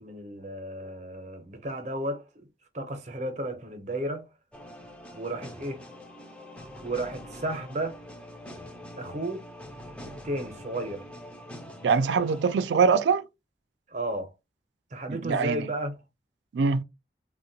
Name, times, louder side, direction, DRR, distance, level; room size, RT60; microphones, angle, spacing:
voice 1, 0.0-2.3 2.7-4.3 5.1-5.8 6.8-8.0 9.0-9.4 10.1-11.0 13.9-14.3 14.9-16.0, right 1 dB, 40° right, 0.6 m, -33 dB
sound 1, 4.5-12.6, equal, 5° left, 0.4 m, -44 dB
voice 2, 11.8-13.2 15.1-15.7 16.5-16.8, right 5 dB, 85° right, 0.3 m, -23 dB
3.6 x 2.1 x 2.7 m
head